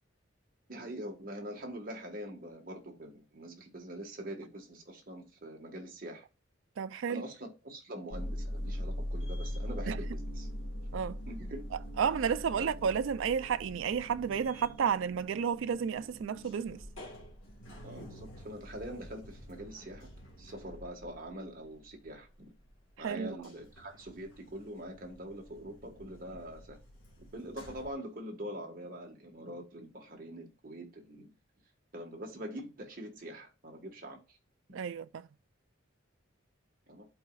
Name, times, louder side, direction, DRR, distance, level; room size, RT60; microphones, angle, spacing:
voice 1, 0.7-6.2 7.1-10.5 11.3-11.6 12.6-12.8 17.8-20.1 20.4-22.3 23.0-26.8 27.2-31.3 31.9-34.4 36.9-37.0, equal, 45° right, 1.4 m, -44 dB
voice 2, 6.8-7.2 9.9-10.0 10.9-11.2 12.0-16.8 23.0-23.4 34.7-35.2, right 7 dB, 70° right, 0.4 m, -32 dB
sound 1, 8.1-22.7 23.1-27.9, equal, 70° left, 1.6 m, -43 dB
11.5 x 4.0 x 2.3 m
head